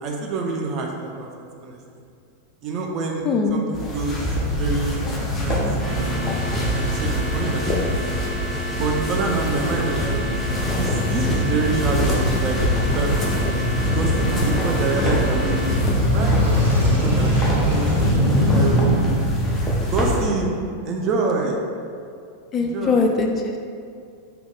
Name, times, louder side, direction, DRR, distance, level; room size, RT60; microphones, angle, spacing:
voice 1, 0.0-1.3 1.6-1.8 2.6-3.2 3.5-4.3 4.6-5.0 5.3-6.2 6.7-8.2 8.8-10.2 10.6-12.6 12.9-13.1 13.9-15.6 16.1-17.9 18.2-19.3 19.9-20.5 20.8-21.6 22.6-23.1, right 3 dB, 35° right, 0 dB, 0.5 m, -27 dB
voice 2, 3.2-3.6 22.5-23.6, left 4 dB, 25° left, 2 dB, 0.3 m, -21 dB
sound 1, 3.7-20.2, equal, 10° left, 0.8 m, -25 dB
Male speech man speaking / Motorcycle / Idling, 4.2-20.2, left 1 dB, 80° right, 1.5 m, -24 dB
sound 2, 5.8-15.8, left 1 dB, 10° right, 1.2 m, -32 dB
3.6 x 2.9 x 3.6 m, 2.4 s
figure-of-eight pair, 90°, 0 cm